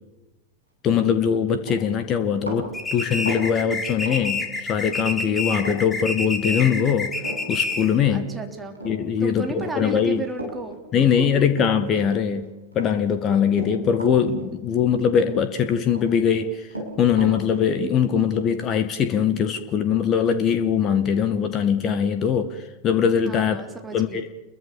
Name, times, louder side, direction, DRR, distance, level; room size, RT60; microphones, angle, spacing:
voice 1, 0.8-7.1 7.5-8.3 8.8-10.2 10.9-12.5 12.7-16.7 17.0-23.6 23.9-24.3, left 7 dB, 30° left, 9 dB, 1.9 m, -22 dB
Run, 1.6-5.0 5.2-5.8 6.0-12.4 12.7-14.9 15.1-16.1 16.3-19.6, right 1 dB, 85° right, 7.9 m, -36 dB
sound 1, 2.7-8.0, left 2 dB, 10° left, 3.9 m, -28 dB
voice 2, 8.1-8.8 9.2-11.4 23.2-24.3, right 3 dB, 10° right, 4 dB, 3.4 m, -34 dB
29.0 x 23.0 x 7.4 m, 1.0 s
figure-of-eight pair, 90°, 0 cm